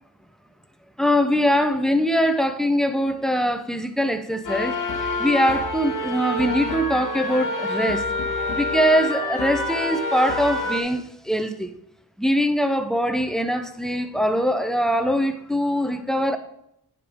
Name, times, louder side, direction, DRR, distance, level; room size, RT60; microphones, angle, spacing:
voice 1, 1.0-4.8 5.2-8.0 8.5-11.7 12.2-16.4, equal, ahead, 0.5 m, -22 dB
sound 1, 4.4-10.8, left 2 dB, 55° left, 1.1 m, -27 dB
9.9 x 5.2 x 3.5 m
wide cardioid pair, 155°, 37 cm